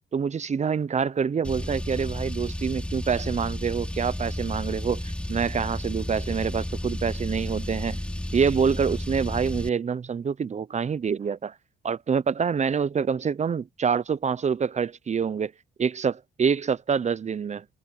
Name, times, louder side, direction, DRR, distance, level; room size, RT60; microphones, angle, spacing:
voice 1, 0.1-5.0 5.3-8.0 8.3-11.5 11.8-15.5 15.8-17.6, right 6 dB, 35° right, 0.7 m, -26 dB
Car, 1.4-9.7, left 1 dB, 5° left, 3.5 m, -32 dB
cardioid pair, 90°, 20 cm